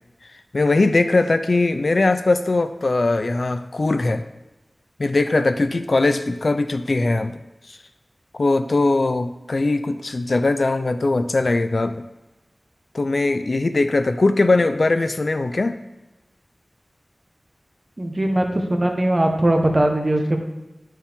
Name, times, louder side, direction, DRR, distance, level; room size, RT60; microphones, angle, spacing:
voice 1, 0.5-4.2 5.0-7.4 7.7-7.8 8.4-12.0 12.9-15.8, left 2 dB, 65° left, 10 dB, 0.4 m, -20 dB
voice 2, 18.0-20.4, right 1 dB, 35° right, 3 dB, 1.1 m, -20 dB
11.0 x 4.5 x 3.6 m, 1.0 s
wide cardioid pair, 55°, 0 cm